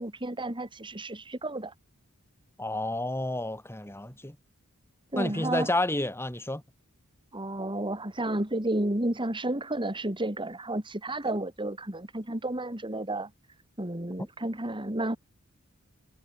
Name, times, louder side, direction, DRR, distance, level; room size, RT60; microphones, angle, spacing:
voice 1, 0.0-1.7 5.1-5.7 7.3-13.3 13.8-15.2, right 1 dB, 20° right, 2.9 m, -31 dB
voice 2, 2.6-4.4 5.2-6.6, left 1 dB, 10° left, 3.0 m, -30 dB
head